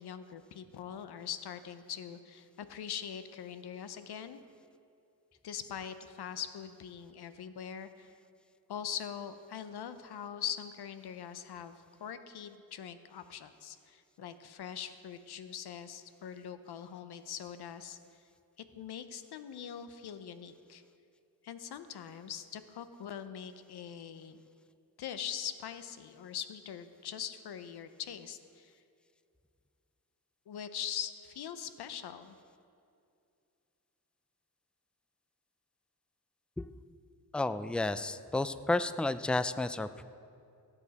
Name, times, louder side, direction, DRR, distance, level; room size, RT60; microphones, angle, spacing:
voice 1, 0.0-4.4 5.4-8.1 8.7-18.0 18.8-20.8 21.4-24.4 25.0-28.8 30.5-32.4, left 8 dB, 85° left, 11 dB, 0.7 m, -42 dB
voice 2, 37.3-40.0, left 2 dB, 5° left, 13 dB, 0.3 m, -31 dB
18.0 x 8.2 x 4.1 m, 2.5 s
cardioid pair, 85°, 38 cm